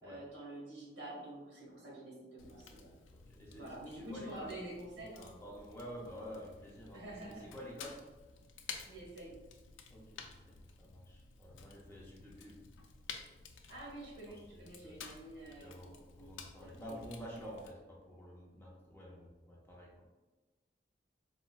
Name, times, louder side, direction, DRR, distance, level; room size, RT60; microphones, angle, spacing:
voice 1, 0.0-2.9 3.5-5.3 6.9-7.5 8.9-9.4 13.7-17.0, right 1 dB, 70° right, -4 dB, 1.1 m, -48 dB
Fire, 2.4-17.7, left 5 dB, 85° left, 0.3 m, -53 dB
voice 2, 3.1-4.6 5.2-8.0 9.9-12.6 14.3-15.0 15.4-20.0, equal, 10° left, -4 dB, 0.4 m, -50 dB
3.9 x 2.1 x 2.2 m, 1.2 s
head